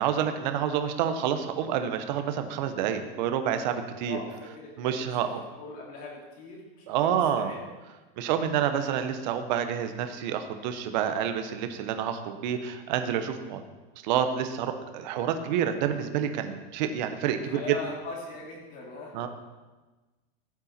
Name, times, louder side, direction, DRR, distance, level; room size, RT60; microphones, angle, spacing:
voice 1, 0.0-4.2 4.8-5.4 6.9-7.5 8.2-13.6 14.0-17.6 19.1-19.3, right 9 dB, 45° right, 8 dB, 1.0 m, -28 dB
voice 2, 4.0-5.3 5.6-7.0 7.4-7.6 8.2-8.4 17.3-19.3, left 3 dB, 25° left, -1 dB, 2.5 m, -41 dB
14.0 x 8.7 x 4.4 m, 1.2 s
supercardioid pair, 175°, 31 cm